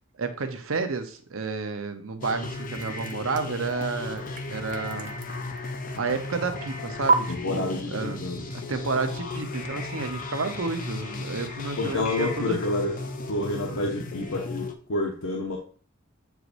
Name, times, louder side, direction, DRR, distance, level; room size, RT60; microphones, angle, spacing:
voice 1, 0.2-5.1 5.9-8.2 8.5-12.6, right 4 dB, 75° right, 7 dB, 0.8 m, -31 dB
sound 1, 2.2-14.7, left 3 dB, 40° left, 0.7 m, -35 dB
sound 2, 2.6-6.4 7.1-7.2, right 4 dB, 40° right, 0.5 m, -31 dB
voice 2, 7.3-8.4 11.8-13.0 13.3-15.6, left 2 dB, 75° left, 0 dB, 0.8 m, -29 dB
8.1 x 4.6 x 2.6 m, 0.42 s
head